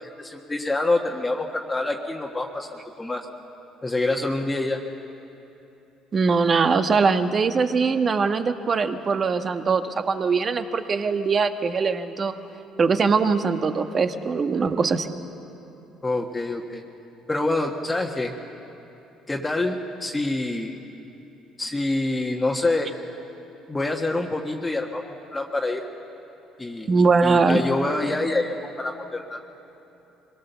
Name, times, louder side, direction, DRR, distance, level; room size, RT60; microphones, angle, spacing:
voice 1, 0.0-3.3 3.8-4.8 16.0-16.8 17.3-18.3 19.3-20.8 21.6-22.9 23.7-25.9 26.6-26.9 27.2-29.4, left 2 dB, 20° left, 1 dB, 1.5 m, -26 dB
voice 2, 6.1-12.3 12.8-15.2 26.9-27.7, right 4 dB, 40° right, 8 dB, 1.3 m, -22 dB
24.5 x 18.5 x 6.9 m, 3.0 s
supercardioid pair, 80°, 0 cm